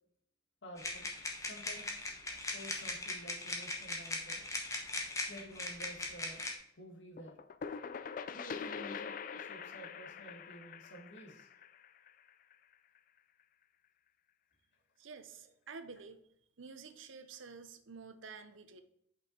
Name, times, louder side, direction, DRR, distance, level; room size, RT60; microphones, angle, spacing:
voice 1, 0.6-1.1 1.4-1.9 2.5-4.4 5.3-6.5 6.8-7.4 8.3-11.5 15.4-15.5 16.9-17.0, equal, 75° left, 1 dB, 1.4 m, -51 dB
sound 1, 0.8-6.5, left 2 dB, 15° left, 0.9 m, -40 dB
sound 2, 7.2-12.7, left 6 dB, 45° left, 0.3 m, -44 dB
voice 2, 15.0-16.2 16.6-18.8, right 5 dB, 90° right, 9 dB, 0.7 m, -50 dB
5.5 x 5.3 x 4.2 m, 0.72 s
head